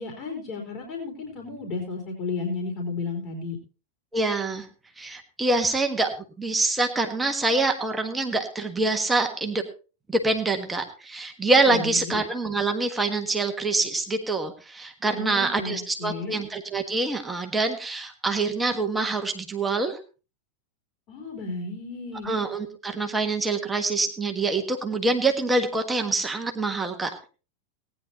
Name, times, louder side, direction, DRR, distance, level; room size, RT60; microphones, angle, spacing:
voice 1, 0.0-3.6 11.7-12.2 15.1-16.4 21.1-22.3, left 3 dB, 35° left, 0 dB, 4.1 m, -33 dB
voice 2, 4.1-4.7 5.0-6.1 6.4-9.6 10.1-20.0 22.2-27.1, right 3 dB, 10° right, 4 dB, 1.5 m, -25 dB
18.5 x 10.5 x 3.0 m, 0.34 s
figure-of-eight pair, 90°, 0 cm